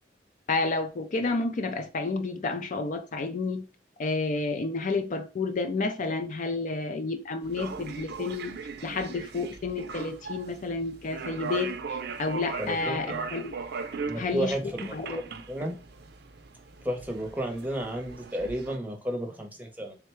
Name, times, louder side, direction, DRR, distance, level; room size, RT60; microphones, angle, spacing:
voice 1, 0.5-3.6 4.0-8.5 8.8-13.5 14.2-14.6 14.9-15.2, left 3 dB, 45° left, 0.4 m, -30 dB
sound 1, 7.4-18.8, right 5 dB, 60° right, 0.5 m, -39 dB
voice 2, 12.6-13.2 14.0-15.7 16.8-20.0, right 1 dB, 10° right, 0.7 m, -33 dB
3.6 x 2.2 x 4.4 m
head